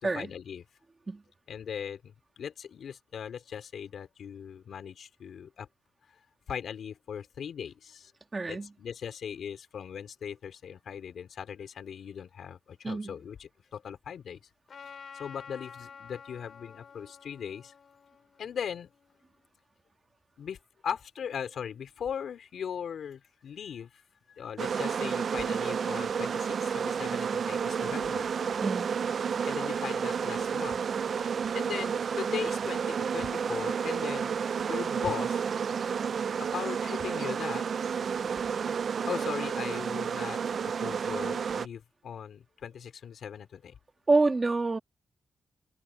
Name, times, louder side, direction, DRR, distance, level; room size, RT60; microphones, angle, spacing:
voice 1, 0.0-0.6 1.5-5.7 6.5-8.1 8.5-14.4 15.1-17.7 18.4-18.9 20.4-20.6 20.8-23.9 24.3-28.3 29.4-30.8 31.5-34.4 34.7-35.4 36.4-37.7 39.1-40.4 40.8-43.7, left 8 dB, 80° left, 3.3 m, -39 dB
voice 2, 8.3-8.7 12.8-13.1 28.6-28.9 44.1-44.8, right 3 dB, 30° right, 2.0 m, -26 dB
Trumpet, 14.7-19.3, left 6 dB, 60° left, 7.8 m, -50 dB
sound 1, 24.6-41.7, right 6 dB, 60° right, 0.4 m, -31 dB
wide cardioid pair, 105°, 0 cm